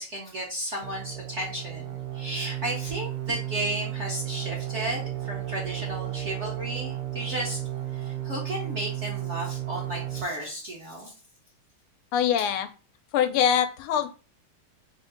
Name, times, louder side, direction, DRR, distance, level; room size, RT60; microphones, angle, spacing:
voice 1, 0.0-7.6 7.9-11.1, right 1 dB, 50° right, -3 dB, 0.9 m, -34 dB
sound 1, 0.8-10.2, right 12 dB, 85° right, 1.6 m, -33 dB
voice 2, 12.1-12.7 13.1-14.1, left 9 dB, 90° left, 9 dB, 1.5 m, -23 dB
3.8 x 2.5 x 3.8 m, 0.34 s
omnidirectional pair, 2.3 m